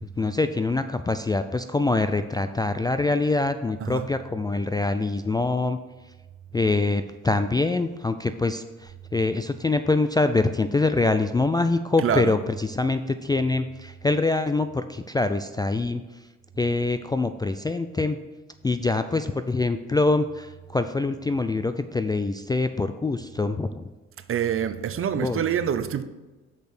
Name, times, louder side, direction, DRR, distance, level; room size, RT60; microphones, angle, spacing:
voice 1, 0.0-5.8 6.5-16.0 16.6-18.2 18.6-23.9 25.2-25.4, left 3 dB, 15° left, 0.3 m, -24 dB
voice 2, 12.0-12.3 24.3-26.0, right 9 dB, 45° right, 0.6 m, -26 dB
6.5 x 5.2 x 6.0 m
cardioid pair, 90°, 30 cm